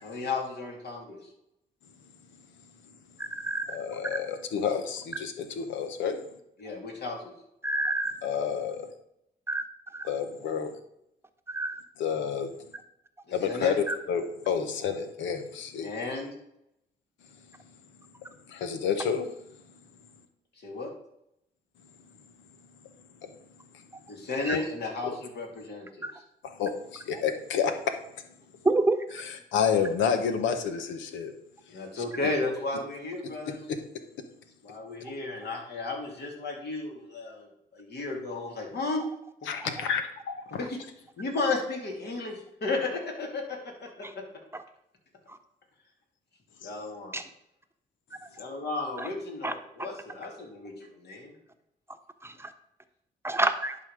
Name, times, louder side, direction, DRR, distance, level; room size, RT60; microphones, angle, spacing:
voice 1, 0.0-1.2 6.6-7.3 13.5-13.7 15.8-16.3 20.6-20.9 24.1-26.0 31.7-33.6 34.6-39.0 40.6-40.8 41.2-44.2 46.6-47.2 48.4-51.3, left 3 dB, 60° left, 0 dB, 2.8 m, -34 dB
voice 2, 3.7-6.2 8.2-8.9 10.0-10.7 12.0-12.5 13.3-15.9 18.5-19.3 23.2-23.3 24.5-24.6 25.0-25.1 26.4-27.9 29.1-31.3 32.0-32.1 33.7-33.8 39.5-40.7 46.6-46.7, left 7 dB, 90° left, 7 dB, 1.0 m, -30 dB
voice 3, 7.6-8.1 9.5-9.6 9.9-10.0 11.5-11.8 24.5-24.6 28.6-29.0 47.1-47.2 49.4-49.5 53.2-53.7, right 2 dB, 15° right, 8 dB, 1.0 m, -26 dB
11.0 x 4.0 x 5.0 m, 0.77 s
supercardioid pair, 60°, 19 cm